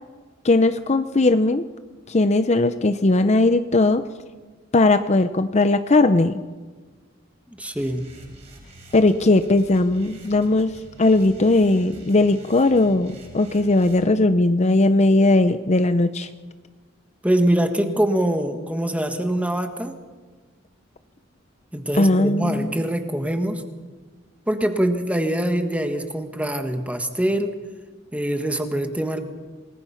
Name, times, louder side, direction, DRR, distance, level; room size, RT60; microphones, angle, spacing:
voice 1, 0.4-1.6 2.1-4.0 4.7-6.4 8.9-10.7 11.0-16.3 22.0-22.7, left 2 dB, 35° left, 10 dB, 0.6 m, -18 dB
voice 2, 7.6-8.1 17.2-20.0 21.7-23.6 24.5-27.5 28.1-29.2, right 1 dB, 5° right, 6 dB, 1.6 m, -23 dB
sound 1, 7.7-14.0, right 1 dB, 30° right, 7.4 m, -46 dB
28.0 x 19.5 x 5.8 m, 1.4 s
head